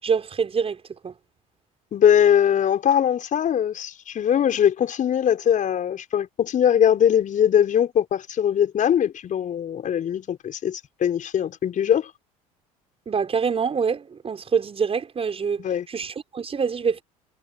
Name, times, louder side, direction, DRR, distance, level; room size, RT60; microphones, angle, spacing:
voice 1, 0.0-1.2 13.1-17.0, right 6 dB, 30° right, 5.9 m, -25 dB
voice 2, 1.9-12.1 15.6-15.9, left 9 dB, 45° left, 5.5 m, -21 dB
hypercardioid pair, 65°, 18 cm